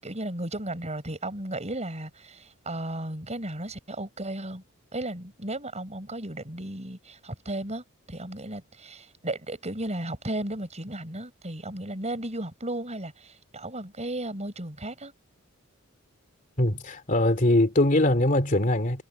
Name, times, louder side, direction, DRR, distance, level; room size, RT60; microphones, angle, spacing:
voice 1, 0.0-4.6 4.9-15.1, right 1 dB, 30° right, 6.6 m, -35 dB
voice 2, 16.6-19.0, left 1 dB, 40° left, 2.8 m, -22 dB
head